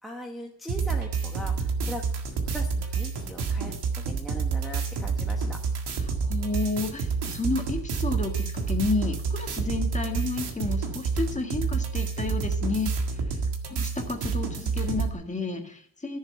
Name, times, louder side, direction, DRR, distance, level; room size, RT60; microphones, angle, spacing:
voice 1, 0.0-2.0 2.5-5.6, equal, ahead, 0 dB, 1.1 m, -40 dB
sound 1, 0.7-15.1, right 5 dB, 80° right, 1.9 m, -29 dB
voice 2, 6.1-13.4 13.7-16.2, left 3 dB, 20° left, 3 dB, 1.8 m, -31 dB
13.5 x 7.4 x 5.6 m, 0.63 s
cardioid pair, 130°, 39 cm